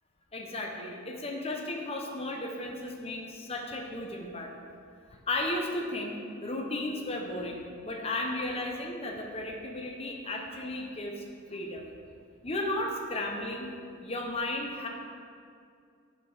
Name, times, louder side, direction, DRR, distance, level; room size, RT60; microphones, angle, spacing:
voice 1, 0.3-4.5 5.3-11.9 12.4-13.7 14.0-14.9, left 1 dB, 30° left, 1 dB, 0.9 m, -34 dB
6.8 x 6.8 x 4.9 m, 2.3 s
head